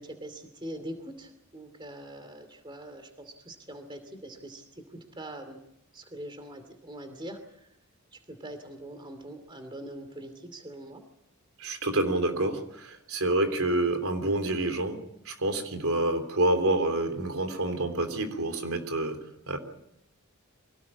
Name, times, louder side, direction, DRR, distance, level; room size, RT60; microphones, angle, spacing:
voice 1, 0.0-5.6 5.9-7.7 8.1-11.0, right 1 dB, 20° right, 8 dB, 2.6 m, -43 dB
voice 2, 11.6-15.0 15.2-19.2 19.5-19.6, right 2 dB, 75° right, 6 dB, 3.4 m, -27 dB
24.5 x 18.0 x 8.5 m, 0.78 s
head